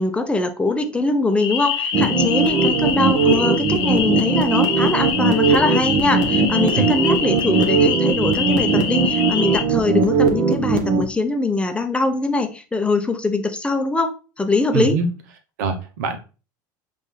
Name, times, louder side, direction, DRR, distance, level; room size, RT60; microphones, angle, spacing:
voice 1, 0.0-15.0, left 3 dB, 10° left, 0.6 m, -22 dB
sound 1, 1.4-9.6, left 7 dB, 55° left, 0.8 m, -25 dB
sound 2, 1.9-11.0, right 5 dB, 55° right, 1.1 m, -19 dB
voice 2, 14.7-15.1 15.6-16.2, right 4 dB, 85° right, 0.9 m, -23 dB
5.2 x 2.6 x 3.2 m
supercardioid pair, 105°, 10 cm